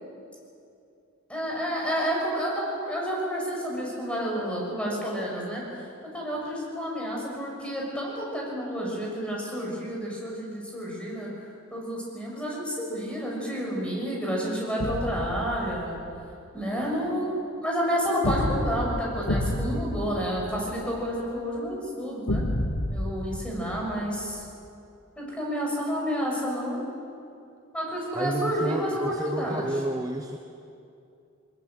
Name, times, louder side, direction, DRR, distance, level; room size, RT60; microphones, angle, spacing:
voice 1, 1.3-5.8 6.1-11.3 11.7-16.0 16.5-22.4 22.9-24.4 25.2-26.8 27.7-29.6, equal, 5° left, -3 dB, 6.6 m, -30 dB
sound 1, 14.8-16.2 18.2-21.2 22.3-24.4, left 1 dB, 85° left, 1.7 m, -30 dB
voice 2, 28.1-30.4, right 1 dB, 15° right, 5 dB, 0.9 m, -30 dB
22.5 x 20.5 x 7.9 m, 2.5 s
head